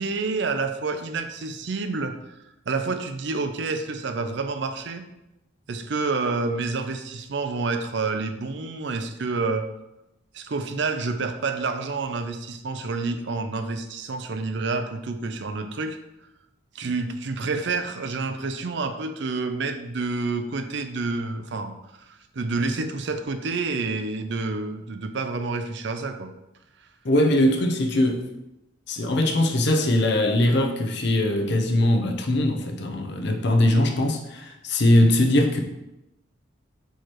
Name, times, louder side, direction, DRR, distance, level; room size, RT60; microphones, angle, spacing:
voice 1, 0.0-2.2 2.7-5.1 5.7-9.7 10.3-16.0 16.7-26.3, right 3 dB, 55° right, 0.5 m, -28 dB
voice 2, 27.0-28.3 28.9-35.6, left 1 dB, 55° left, 0.7 m, -21 dB
4.6 x 4.5 x 4.5 m
head